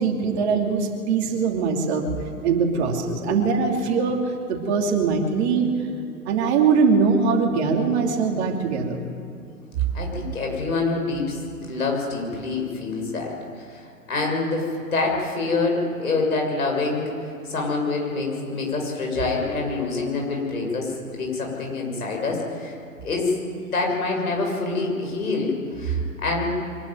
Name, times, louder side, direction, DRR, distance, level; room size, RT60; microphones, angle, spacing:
voice 1, 0.0-2.1 2.4-5.7 6.3-9.0, right 5 dB, 45° right, 2 dB, 3.0 m, -22 dB
voice 2, 9.9-17.0 17.5-22.7 23.0-23.4 23.7-26.5, left 3 dB, 70° left, 0 dB, 6.7 m, -26 dB
24.0 x 11.5 x 9.4 m, 2.6 s
figure-of-eight pair, 110°, 45 cm